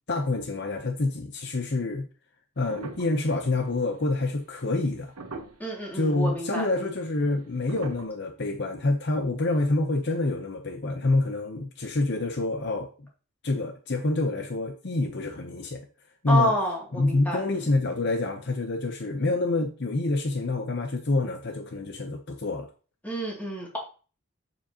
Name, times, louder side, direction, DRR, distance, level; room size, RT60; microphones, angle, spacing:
voice 1, 0.1-2.1 2.6-5.1 5.9-12.9 13.4-15.8 16.2-16.5 17.0-22.7, left 2 dB, 50° left, 6 dB, 0.7 m, -27 dB
sound 1, 2.7-4.0 4.8-4.9 5.2-5.8 6.6-6.7 7.7-8.1, right 2 dB, 80° right, 1.2 m, -40 dB
voice 2, 5.6-6.9 16.3-17.7 23.0-23.8, equal, 10° left, -3 dB, 2.5 m, -29 dB
7.4 x 7.1 x 2.9 m, 0.37 s
head